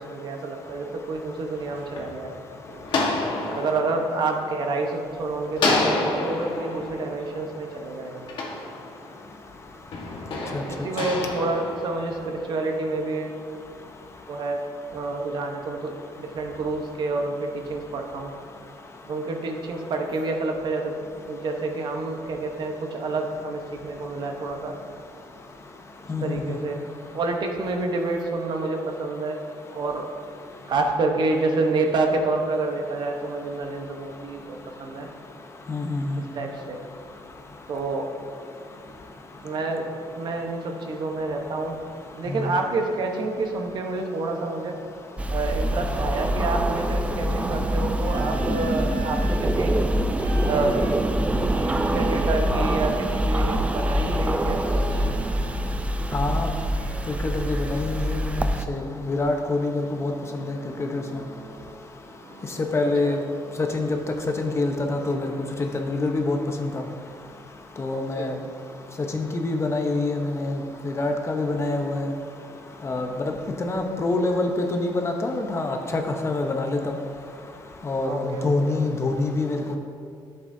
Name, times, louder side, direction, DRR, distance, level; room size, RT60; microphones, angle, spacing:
voice 1, 0.0-2.3 3.5-8.3 10.4-13.4 14.3-14.6 14.9-18.3 19.0-21.0 21.2-24.8 26.2-26.8 27.1-29.4 29.7-30.1 30.7-35.1 36.2-36.8 37.7-38.1 39.4-41.8 42.1-44.8 45.3-49.7 50.4-50.8 51.9-55.1 63.0-63.1 67.9-68.3 78.0-78.8, right 3 dB, 55° right, 3 dB, 1.0 m, -28 dB
sound 1, 1.4-5.1 5.5-9.3 9.9-12.6, left 2 dB, 65° left, 1.4 m, -29 dB
voice 2, 26.1-26.6 35.7-36.2 42.3-42.4 56.1-56.5 57.2-61.2 62.7-63.2 63.6-63.9 64.4-65.3 65.6-66.7 67.8-68.3 69.1-70.6 70.8-72.1 72.8-73.3 73.6-77.0 77.8-79.8, left 2 dB, 30° left, 3 dB, 0.9 m, -26 dB
sound 2, 45.2-58.7, right 1 dB, 15° right, 0.4 m, -25 dB
Organ, 48.0-49.6 50.2-52.8 54.1-55.8 56.2-58.5 60.0-61.9 62.2-64.9, right 2 dB, 90° right, 1.3 m, -43 dB
11.0 x 8.0 x 2.7 m, 2.3 s
cardioid pair, 105°, 9 cm